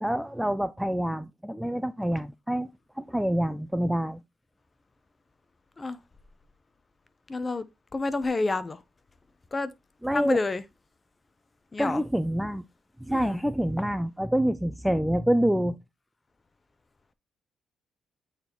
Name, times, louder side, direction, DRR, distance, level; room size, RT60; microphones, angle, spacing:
voice 1, 0.0-2.7 3.0-4.2 10.0-10.4 11.8-12.6 13.0-15.8, equal, 5° right, 0.3 m, -27 dB
voice 2, 7.3-7.7 7.9-8.8 9.5-9.7 10.1-10.6 11.7-12.0 13.1-13.4, left 3 dB, 25° left, 0.7 m, -29 dB
8.5 x 4.1 x 2.9 m
cardioid pair, 100°, 0 cm